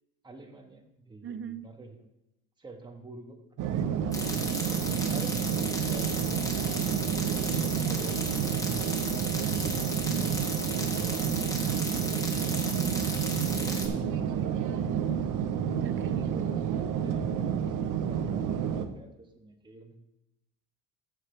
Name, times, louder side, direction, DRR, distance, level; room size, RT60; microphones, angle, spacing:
voice 1, 0.2-2.0 2.6-3.4 4.5-6.5 7.2-9.2 10.4-11.2 12.9-15.3 15.9-20.0, right 2 dB, 15° right, 2 dB, 1.4 m, -48 dB
voice 2, 1.2-1.7 4.0-4.5 10.0-10.4 15.8-16.4, right 8 dB, 40° right, 12 dB, 0.6 m, -41 dB
sound 1, 3.6-18.8, right 8 dB, 70° right, 1.0 m, -29 dB
sound 2, 4.1-13.9, left 1 dB, 10° left, 1.3 m, -35 dB
14.0 x 7.6 x 3.3 m, 0.91 s
cardioid pair, 130°, 32 cm